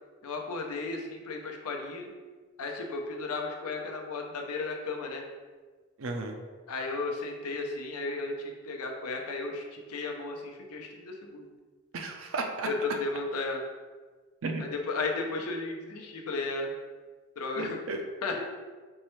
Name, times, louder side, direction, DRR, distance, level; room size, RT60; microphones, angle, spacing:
voice 1, 0.2-2.1 2.6-5.2 6.7-11.5 12.7-13.6 14.6-16.7 17.4-17.8 18.2-18.4, left 3 dB, 85° left, 2 dB, 0.6 m, -34 dB
voice 2, 6.0-6.3 11.9-12.7 14.4-14.6 17.6-18.0, right 3 dB, 60° right, 3 dB, 0.5 m, -34 dB
4.4 x 3.2 x 3.1 m, 1.4 s
head